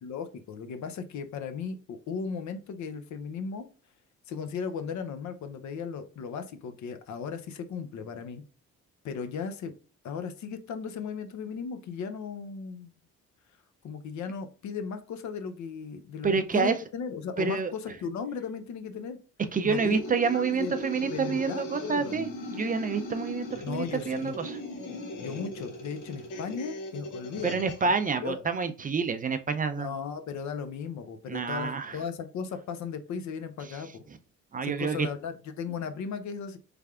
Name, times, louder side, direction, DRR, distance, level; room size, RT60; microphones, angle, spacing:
voice 1, 0.0-3.7 4.3-8.4 9.0-9.7 10.0-12.9 13.8-19.2 19.6-20.8 21.0-22.3 23.6-24.4 25.2-27.9 28.2-28.4 29.7-34.0 34.6-36.6, left 6 dB, 70° left, 10 dB, 0.6 m, -36 dB
voice 2, 16.2-16.7 17.4-17.7 19.5-24.6 27.4-29.9 31.3-32.0 34.5-35.1, right 5 dB, 30° right, 9 dB, 0.4 m, -28 dB
sound 1, 19.7-27.9, left 1 dB, 90° left, 1.0 m, -39 dB
3.4 x 3.3 x 2.3 m, 0.38 s
cardioid pair, 90°, 30 cm